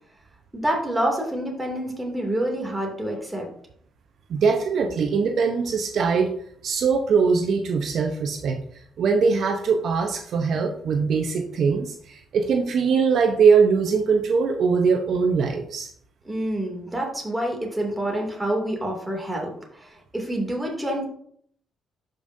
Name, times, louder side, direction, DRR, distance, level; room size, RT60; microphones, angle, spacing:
voice 1, 0.5-3.5 16.2-21.1, right 1 dB, 10° right, 1 dB, 2.5 m, -27 dB
voice 2, 4.3-6.3 6.6-8.6 9.0-15.9, right 5 dB, 65° right, 4 dB, 0.8 m, -21 dB
11.5 x 5.2 x 2.6 m, 0.66 s
cardioid pair, 90°, 0 cm